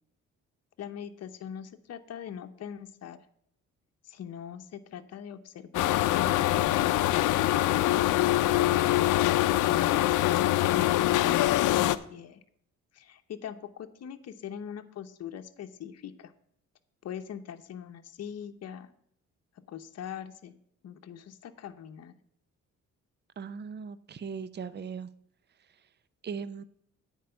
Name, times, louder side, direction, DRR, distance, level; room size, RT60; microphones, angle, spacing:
voice 1, 0.8-3.2 4.0-8.3 9.6-12.4 12.9-16.3 17.0-18.9 19.7-20.5 20.8-22.1, left 8 dB, 55° left, 7 dB, 0.9 m, -42 dB
sound 1, 5.7-12.0, left 15 dB, 85° left, 0.6 m, -24 dB
voice 2, 23.4-25.1 26.2-26.6, right 6 dB, 35° right, 15 dB, 0.6 m, -38 dB
9.3 x 4.7 x 7.7 m, 0.69 s
cardioid pair, 90°, 30 cm